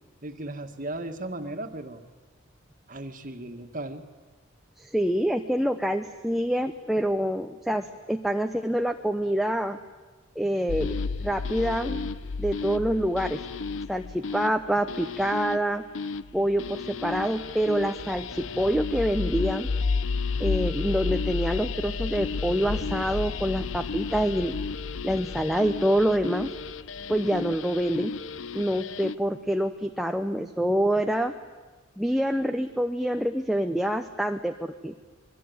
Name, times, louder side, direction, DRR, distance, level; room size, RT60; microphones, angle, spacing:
voice 1, 0.2-2.0 2.9-4.1, right 2 dB, 40° right, 7 dB, 1.8 m, -36 dB
voice 2, 4.8-9.8 10.4-11.0 11.2-12.1 12.4-13.4 13.9-15.8 16.3-19.7 20.4-24.6 25.0-26.5 27.1-28.1 28.5-31.3 32.0-34.9, equal, ahead, 5 dB, 0.8 m, -26 dB
sound 1, 10.7-29.1, left 4 dB, 75° left, 0.8 m, -32 dB
27.0 x 22.5 x 9.5 m, 1.3 s
head